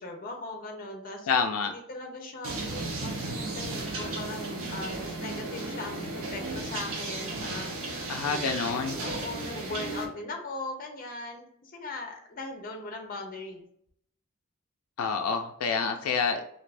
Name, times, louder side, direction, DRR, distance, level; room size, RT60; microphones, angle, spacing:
voice 1, 0.0-1.3 1.7-8.7 9.0-13.6, left 2 dB, 40° left, 3 dB, 0.6 m, -39 dB
voice 2, 1.3-1.7 8.1-8.9 15.0-16.4, left 5 dB, 85° left, 5 dB, 0.3 m, -28 dB
sound 1, 2.4-10.1, right 2 dB, 75° right, 0.7 m, -35 dB
2.6 x 2.5 x 3.2 m, 0.71 s
head